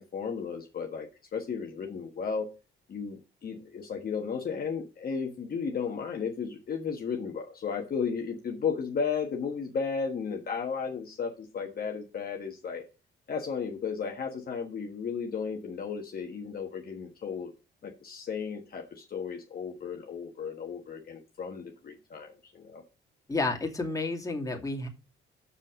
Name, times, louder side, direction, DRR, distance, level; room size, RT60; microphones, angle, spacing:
voice 1, 0.0-2.5 2.9-12.8 13.3-17.5 17.8-22.8, left 6 dB, 50° left, 1 dB, 1.4 m, -34 dB
voice 2, 23.3-24.9, left 3 dB, 15° left, 0 dB, 2.6 m, -31 dB
7.0 x 5.4 x 6.3 m, 0.30 s
cardioid pair, 90°, 20 cm